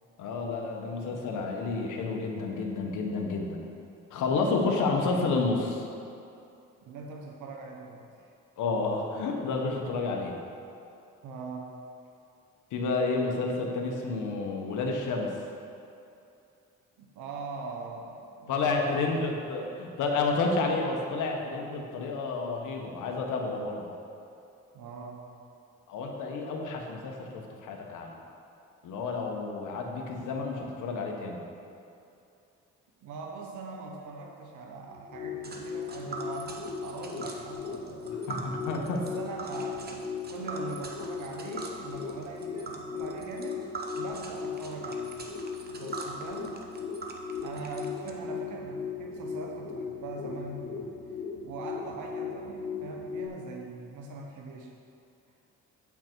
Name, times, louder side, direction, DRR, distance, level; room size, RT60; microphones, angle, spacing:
voice 1, 0.2-3.6 4.1-5.8 8.6-10.4 12.7-15.3 18.5-23.9 25.9-28.1 28.8-31.4 38.3-39.0, left 3 dB, 80° left, 1 dB, 1.2 m, -30 dB
voice 2, 6.9-8.3 11.2-11.7 17.0-19.2 24.7-25.4 33.0-38.3 38.8-43.7 44.0-45.2 45.7-46.6 47.4-50.9 51.4-54.8, right 3 dB, 80° right, 0 dB, 1.0 m, -41 dB
sound 1, 34.9-53.3, left 5 dB, 40° left, 0.7 m, -38 dB
Tick, 35.4-48.1, right 3 dB, 30° right, 1.0 m, -43 dB
8.9 x 5.8 x 4.6 m, 2.6 s
cardioid pair, 90°, 30 cm